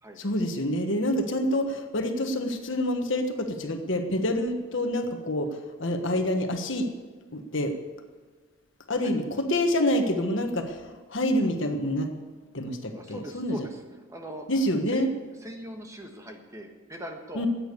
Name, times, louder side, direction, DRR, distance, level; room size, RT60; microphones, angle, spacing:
voice 1, 0.2-6.9 7.3-7.7 8.9-12.1 12.5-13.6 14.5-15.1 17.3-17.5, left 1 dB, 60° left, 5 dB, 1.4 m, -27 dB
voice 2, 12.9-13.8 14.1-14.5 14.9-15.1 15.4-17.5, equal, 15° right, 3 dB, 1.4 m, -40 dB
14.0 x 8.9 x 8.3 m, 1.4 s
head